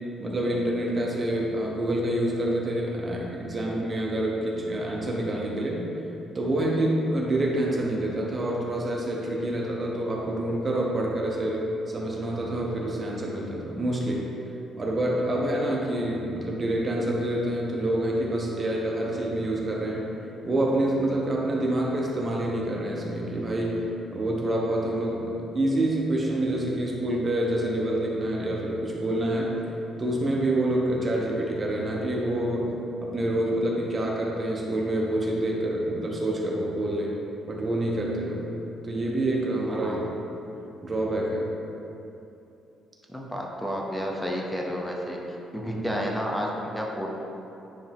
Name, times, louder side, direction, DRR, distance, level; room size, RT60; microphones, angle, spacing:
voice 1, 0.2-5.8 6.3-14.2 14.8-20.1 20.4-23.9 24.1-29.6 30.0-32.7 33.0-37.2 37.5-38.5 38.8-40.1 40.8-41.5 45.6-45.9, right 1 dB, 25° right, -2 dB, 0.9 m, -27 dB
voice 2, 39.6-40.1 43.1-45.2 45.5-47.2, equal, 5° left, -1 dB, 0.7 m, -31 dB
9.4 x 3.4 x 3.5 m, 2.8 s
cardioid pair, 130°, 0 cm